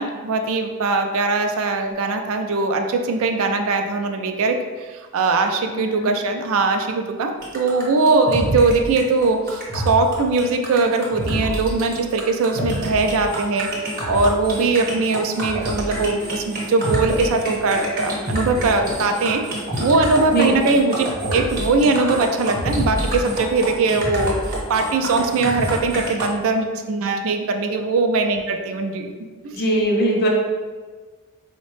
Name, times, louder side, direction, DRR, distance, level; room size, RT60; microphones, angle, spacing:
voice 1, 0.0-13.7 14.1-19.4 19.8-29.1 29.4-29.5, right 3 dB, 65° right, 5 dB, 0.3 m, -21 dB
sound 1, 7.4-26.3, equal, 45° right, 0.9 m, -27 dB
voice 2, 29.5-30.3, right 1 dB, 50° left, -1 dB, 0.6 m, -21 dB
3.8 x 2.1 x 3.1 m, 1.4 s
head